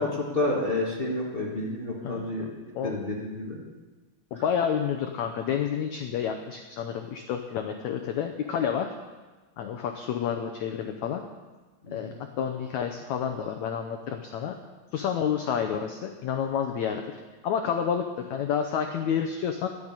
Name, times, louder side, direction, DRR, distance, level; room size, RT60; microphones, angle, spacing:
voice 1, 0.0-2.5 2.8-3.6 11.9-12.1, left 2 dB, 35° left, -3 dB, 0.9 m, -29 dB
voice 2, 2.0-3.0 4.3-8.9 9.6-11.2 11.9-14.5 14.9-17.0 17.4-19.7, left 8 dB, 90° left, 5 dB, 1.6 m, -29 dB
12.0 x 10.0 x 8.9 m, 1.3 s
omnidirectional pair, 4.4 m